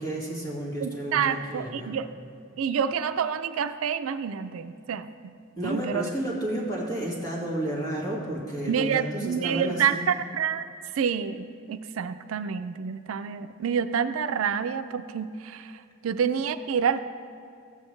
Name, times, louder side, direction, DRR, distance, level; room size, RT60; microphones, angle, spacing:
voice 1, 0.0-2.0 5.6-10.1, right 1 dB, 20° left, -5 dB, 2.0 m, -31 dB
voice 2, 0.8-2.1 2.6-5.1 5.6-6.1 8.7-10.6 11.0-17.0, right 7 dB, 85° right, 11 dB, 0.4 m, -28 dB
14.0 x 8.3 x 3.2 m, 2.4 s
head